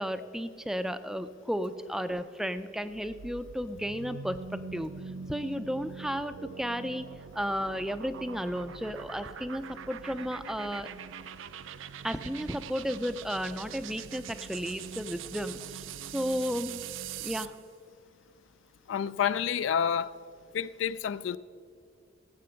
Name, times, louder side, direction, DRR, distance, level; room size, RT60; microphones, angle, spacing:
voice 1, 0.0-4.4 4.7-4.9 5.3-7.1 7.4-10.9 12.0-15.8 16.1-16.8 17.2-17.5, equal, ahead, 0.4 m, -33 dB
sound 1, 2.8-17.6, right 7 dB, 75° right, 0.4 m, -43 dB
voice 2, 18.9-20.1 20.5-21.4, left 8 dB, 70° left, 0.3 m, -29 dB
18.0 x 7.6 x 5.7 m
head